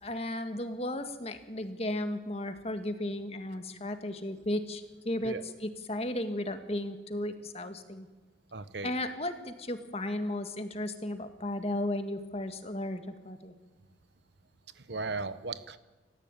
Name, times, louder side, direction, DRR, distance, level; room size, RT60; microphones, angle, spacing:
voice 1, 0.0-5.4 5.6-8.1 8.8-13.5, left 1 dB, 35° left, 8 dB, 1.9 m, -35 dB
voice 2, 8.5-8.9 14.7-15.8, right 3 dB, 70° right, 13 dB, 1.2 m, -36 dB
28.5 x 14.5 x 9.1 m, 1.3 s
head